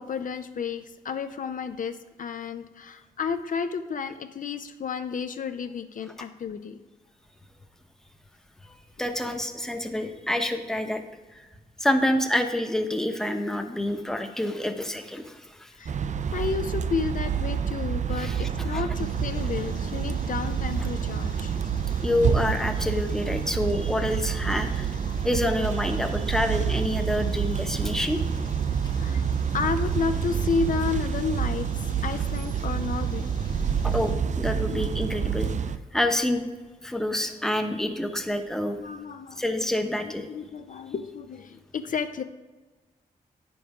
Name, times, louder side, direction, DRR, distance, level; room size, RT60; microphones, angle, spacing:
voice 1, 0.0-6.8 15.8-16.0 16.3-21.6 25.1-25.3 29.0-29.3 29.5-33.4 33.6-33.9 34.5-34.9 38.7-39.4 40.0-42.2, left 5 dB, 60° left, 9 dB, 0.5 m, -32 dB
voice 2, 9.0-11.0 11.8-15.7 18.2-18.4 18.7-18.8 22.0-24.9 25.2-28.2 33.8-35.5 35.9-36.4 36.8-38.8 39.4-40.3, left 1 dB, 5° left, 6 dB, 0.8 m, -27 dB
sound 1, 15.9-35.8, right 7 dB, 50° right, 0.4 m, -28 dB
sound 2, 18.9-34.1, left 1 dB, 30° left, 1.2 m, -46 dB
9.2 x 5.4 x 4.8 m, 1.2 s
cardioid pair, 85°, 15 cm